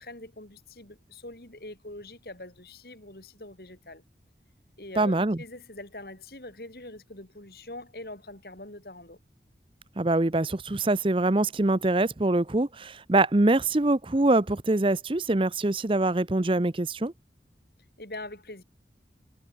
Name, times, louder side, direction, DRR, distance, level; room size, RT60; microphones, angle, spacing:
voice 1, 0.0-4.0 4.8-9.2 18.0-18.6, left 2 dB, 55° left, 3.6 m, -43 dB
voice 2, 5.0-5.4 10.0-17.1, right 2 dB, 30° right, 0.7 m, -24 dB
head